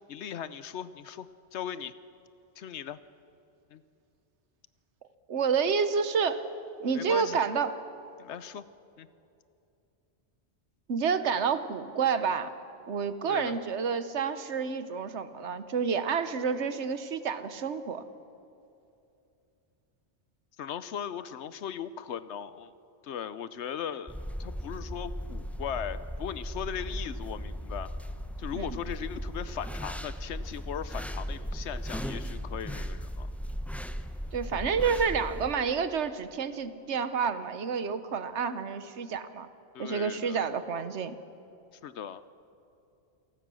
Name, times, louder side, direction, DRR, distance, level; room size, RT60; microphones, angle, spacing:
voice 1, 0.1-1.9 2.6-3.0 3.7-3.8 6.9-7.4 8.2-8.6 9.0-9.1 13.3-13.5 20.6-22.7 23.0-27.9 28.4-33.3 39.7-40.4 41.8-42.2, left 9 dB, 80° left, 14 dB, 1.0 m, -38 dB
voice 2, 5.3-6.4 6.8-7.7 10.9-12.5 12.9-18.0 28.5-28.7 34.3-39.5 39.8-41.2, right 6 dB, 85° right, 12 dB, 1.3 m, -29 dB
sound 1, 24.1-35.5, equal, ahead, 0.7 m, -37 dB
28.5 x 19.0 x 6.3 m, 2.7 s
omnidirectional pair, 1.1 m